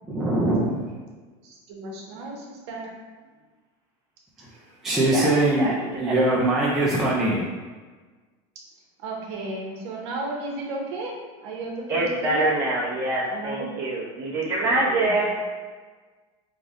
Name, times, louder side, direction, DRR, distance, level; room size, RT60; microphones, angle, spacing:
voice 1, 0.0-0.9 4.4-4.5 4.8-7.5, right 1 dB, ahead, -7 dB, 0.3 m, -22 dB
voice 2, 1.4-2.9 9.0-11.1 11.4-12.5 13.3-13.9 14.9-15.1, right 2 dB, 80° right, -1 dB, 0.8 m, -34 dB
voice 3, 11.9-15.4, right 2 dB, 20° right, -8 dB, 0.9 m, -25 dB
3.3 x 2.5 x 3.5 m, 1.4 s
cardioid pair, 180°, 14 cm